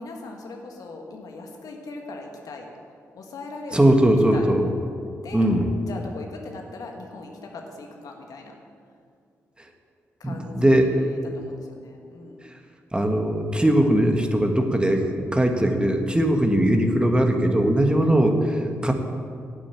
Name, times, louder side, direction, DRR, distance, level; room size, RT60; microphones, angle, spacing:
voice 1, 0.0-2.7 3.1-3.8 4.0-4.5 5.2-5.5 5.8-8.5 10.2-12.5 16.3-16.4 17.9-18.9, left 3 dB, 70° left, 2 dB, 1.6 m, -40 dB
voice 2, 3.7-4.7 5.3-5.7 10.2-11.0 12.4-12.5 12.9-18.9, right 1 dB, 15° right, 4 dB, 1.6 m, -20 dB
9.5 x 7.6 x 8.4 m, 2.3 s
supercardioid pair, 45°, 6 cm